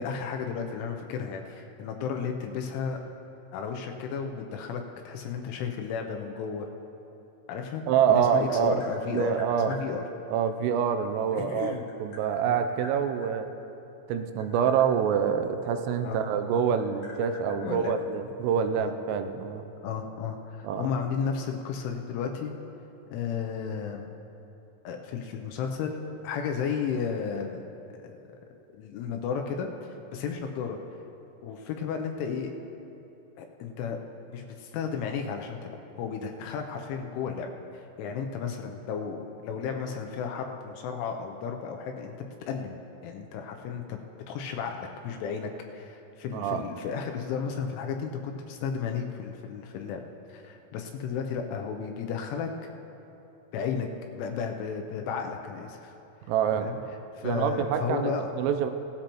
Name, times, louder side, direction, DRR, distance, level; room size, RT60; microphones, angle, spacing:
voice 1, 0.0-3.0 3.5-6.7 7.5-7.8 8.1-9.3 9.7-10.0 11.3-11.8 12.5-12.6 16.0-16.3 17.6-18.0 18.8-18.9 19.8-22.5 23.1-24.1 24.8-27.6 28.0-28.1 28.7-29.7 30.1-30.8 31.4-32.5 33.4-34.0 34.3-37.5 37.7-42.1 42.5-44.0 44.3-50.0 50.3-52.5 53.5-53.9 54.1-55.9 56.6-56.8 57.1-58.3, left 6 dB, 80° left, 3 dB, 3.0 m, -33 dB
voice 2, 7.9-8.8 9.1-9.7 10.3-11.7 12.0-13.5 14.1-19.6 20.6-20.9 46.3-46.6 56.3-56.8 57.2-58.1 58.4-58.7, right 8 dB, 85° right, 8 dB, 3.2 m, -26 dB
Tap, 8.0-9.8 11.2-13.3 14.1-16.2 16.5-18.5, left 3 dB, 55° left, 2.0 m, -48 dB
18.0 x 13.0 x 3.0 m, 3.0 s
omnidirectional pair, 5.9 m